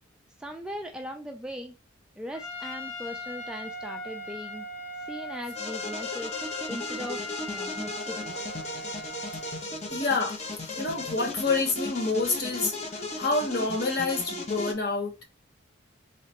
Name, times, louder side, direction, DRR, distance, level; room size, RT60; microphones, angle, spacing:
voice 1, 0.4-1.7 2.2-4.7 5.0-6.3 6.7-8.5, equal, 5° right, 0.3 m, -39 dB
Trumpet, 2.3-9.7, left 1 dB, 70° left, 1.0 m, -39 dB
sound 1, 5.6-14.7, left 2 dB, 35° left, 0.8 m, -36 dB
voice 2, 9.9-10.3 10.8-12.7 13.2-15.2, left 3 dB, 50° left, 1.2 m, -27 dB
3.8 x 3.3 x 2.9 m
head